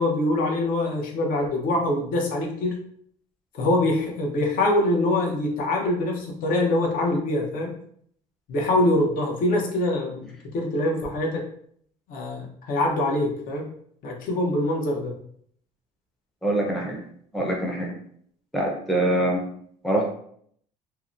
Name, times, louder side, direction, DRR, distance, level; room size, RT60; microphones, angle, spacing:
voice 1, 0.0-2.8 3.5-7.7 8.5-11.5 12.1-13.7 14.0-15.1, left 1 dB, 60° left, 0 dB, 0.7 m, -24 dB
voice 2, 16.4-17.0 17.3-17.9 18.5-19.4 19.8-20.1, right 1 dB, ahead, -1 dB, 0.5 m, -24 dB
2.7 x 2.1 x 2.4 m, 0.64 s
supercardioid pair, 95°, 16 cm